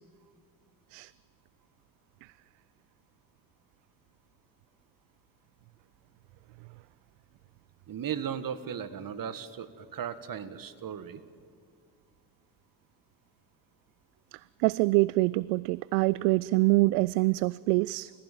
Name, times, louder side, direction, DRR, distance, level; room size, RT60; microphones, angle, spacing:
voice 1, 7.9-11.2, right 8 dB, 40° right, 14 dB, 1.8 m, -36 dB
voice 2, 14.3-18.1, right 22 dB, 65° right, 22 dB, 0.5 m, -25 dB
29.5 x 16.0 x 9.3 m, 2.2 s
hypercardioid pair, 55°, 50 cm